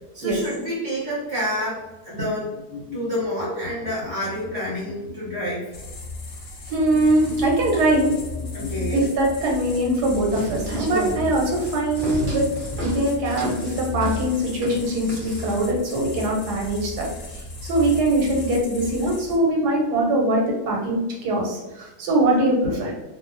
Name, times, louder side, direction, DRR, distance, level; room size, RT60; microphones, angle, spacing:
voice 1, 0.1-2.5 2.9-5.7 8.5-9.0, equal, 25° left, -8 dB, 0.6 m, -28 dB
sound 1, 2.6-5.6 6.8-9.1, left 4 dB, 85° left, 1.2 m, -37 dB
sound 2, 5.7-19.4, left 2 dB, 60° left, 1.0 m, -35 dB
voice 2, 6.7-8.1 8.9-12.4 12.8-17.1 17.3-22.9, right 1 dB, 85° right, -1 dB, 1.3 m, -22 dB
sound 3, 10.2-15.6, right 2 dB, 60° right, 0.5 m, -32 dB
2.7 x 2.2 x 2.5 m, 1.1 s
omnidirectional pair, 1.7 m